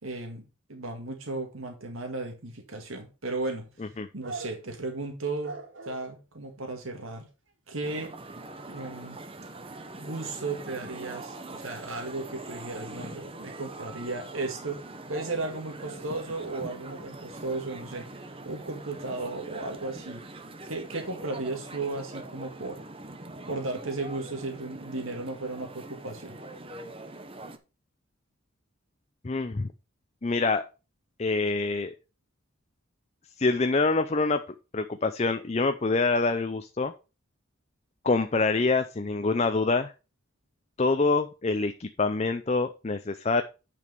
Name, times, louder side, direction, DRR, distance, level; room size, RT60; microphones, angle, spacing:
voice 1, 0.0-3.7 4.1-5.6 5.9-7.3 7.7-8.1 8.7-9.2 10.0-14.8 15.1-20.2 20.7-22.8 23.5-26.4, right 3 dB, 85° right, 2.0 m, -35 dB
sound 1, 2.7-2.8 4.2-4.8 5.4-6.1 7.0-7.1 7.5-7.6 7.9-8.4 9.0-9.3 12.9-13.0 13.3-13.4 14.8-14.9 15.1-17.1, right 3 dB, 70° right, 2.7 m, -43 dB
sound 2, 7.8-27.6, right 2 dB, 25° right, 1.0 m, -43 dB
voice 2, 29.2-29.7 30.2-30.6 31.2-31.9 33.4-34.4 34.7-36.9 38.0-39.9 40.8-43.4, left 3 dB, 30° left, 0.5 m, -25 dB
9.7 x 5.2 x 5.2 m
head